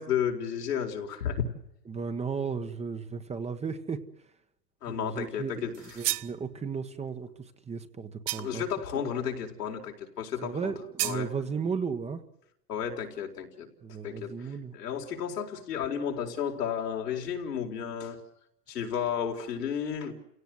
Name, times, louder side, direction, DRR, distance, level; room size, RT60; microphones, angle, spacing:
voice 1, 0.0-1.4 4.8-5.7 8.4-10.7 11.0-11.3 12.7-13.7 14.0-14.5 14.7-18.2 18.7-20.1, left 8 dB, 85° left, 2 dB, 4.5 m, -32 dB
voice 2, 1.9-4.0 4.9-8.6 8.9-9.1 10.4-12.2 13.8-14.8, right 5 dB, 15° right, 9 dB, 1.3 m, -35 dB
sound 1, 5.7-6.4 8.3-8.7 11.0-11.3, right 18 dB, 50° right, 0.9 m, -32 dB
30.0 x 17.5 x 7.8 m, 0.83 s
hypercardioid pair, 120°, 46 cm